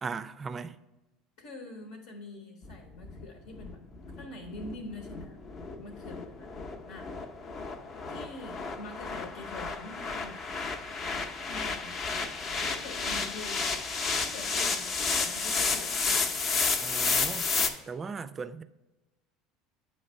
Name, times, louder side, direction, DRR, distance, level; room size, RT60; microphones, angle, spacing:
voice 1, 0.0-0.8 16.8-18.6, right 5 dB, 30° right, 0.4 m, -38 dB
voice 2, 1.4-3.8 4.2-5.4 5.8-6.5 6.9-7.1 8.1-10.4 11.5-12.3 12.6-13.6 14.2-15.9, left 2 dB, 80° left, 1.1 m, -45 dB
sound 1, 2.6-17.7, left 4 dB, 50° left, 0.7 m, -32 dB
8.7 x 3.2 x 4.5 m
hypercardioid pair, 80°, 0 cm